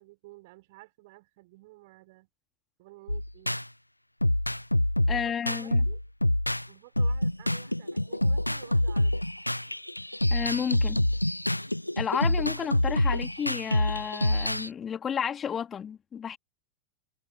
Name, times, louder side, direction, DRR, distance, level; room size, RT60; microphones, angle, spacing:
voice 1, 0.0-2.3 2.8-3.6 5.1-6.0 6.7-9.3, right 21 dB, 50° right, 4.6 m, -52 dB
sound 1, 3.1-3.6 4.2-6.7 7.0-14.7, left 1 dB, 85° left, 1.0 m, -26 dB
voice 2, 5.1-5.8 10.3-11.0 12.0-16.4, left 8 dB, 20° left, 2.7 m, -32 dB
figure-of-eight pair, 90°, 0 cm